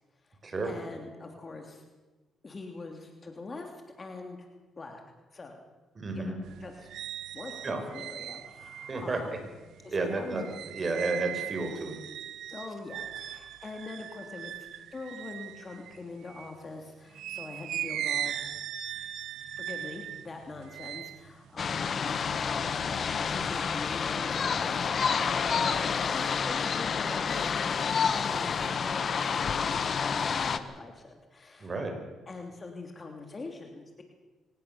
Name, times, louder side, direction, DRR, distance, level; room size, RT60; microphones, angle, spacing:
voice 1, 0.2-1.8 2.4-4.5 4.8-5.0 5.3-5.6 6.1-6.9 7.3-9.4 9.8-10.5 12.5-18.3 19.6-31.8 32.3-34.0, left 3 dB, 30° left, 3 dB, 3.0 m, -43 dB
voice 2, 6.0-6.3 7.6-7.8 8.9-9.2 9.9-10.4 10.7-12.0 31.6-31.9, right 3 dB, 35° right, 5 dB, 5.3 m, -31 dB
sound 1, 6.4-16.6 17.1-22.6 23.0-23.6, right 11 dB, 75° right, 0.8 m, -39 dB
sound 2, 21.6-30.6, left 6 dB, 50° left, 1.3 m, -29 dB
23.5 x 19.0 x 7.0 m, 1.2 s
cardioid pair, 90°, 0 cm